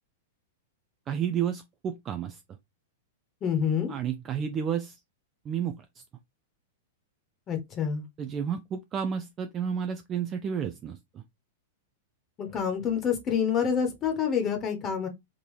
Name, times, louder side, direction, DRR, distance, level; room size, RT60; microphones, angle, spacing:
voice 1, 1.1-2.4 3.9-5.0 5.5-6.0 8.2-11.2, right 8 dB, 30° right, 0.4 m, -31 dB
voice 2, 3.4-3.9 7.5-8.0 12.4-15.1, left 7 dB, 30° left, 1.1 m, -27 dB
3.6 x 2.8 x 3.1 m
figure-of-eight pair, 100°, 0 cm